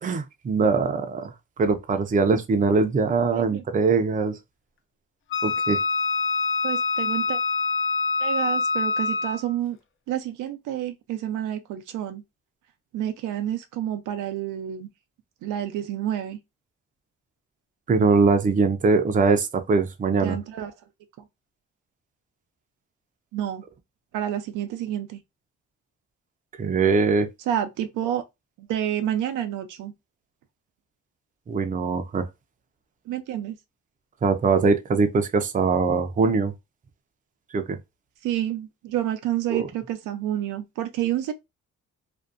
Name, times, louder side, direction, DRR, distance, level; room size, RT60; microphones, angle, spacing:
voice 1, 0.0-1.3 1.6-4.3 5.4-5.8 17.9-20.4 26.6-27.3 31.5-32.3 34.2-36.5 37.5-37.8 39.5-39.7, right 4 dB, 25° right, 0.5 m, -22 dB
Wind instrument woodwind instrument, 5.3-9.5, left 4 dB, 45° left, 0.5 m, -25 dB
voice 2, 6.6-7.4 8.2-9.8 10.1-12.2 12.9-14.9 15.4-16.4 20.2-20.7 23.3-23.6 24.1-25.2 27.5-28.2 28.6-29.9 33.1-33.6 38.2-41.3, right 11 dB, 85° right, 0.6 m, -29 dB
2.6 x 2.2 x 2.4 m
cardioid pair, 90°, 30 cm